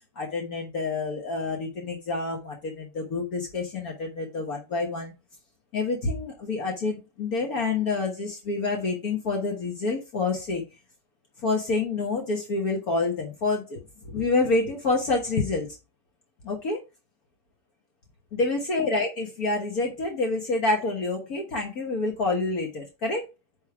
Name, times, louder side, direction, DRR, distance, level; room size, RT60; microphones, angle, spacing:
voice 1, 0.2-5.1 5.7-10.6 11.4-13.8 14.1-15.7 16.4-16.8 18.3-23.2, left 3 dB, 55° left, 1 dB, 1.8 m, -27 dB
9.7 x 3.6 x 4.7 m, 0.28 s
omnidirectional pair, 1.9 m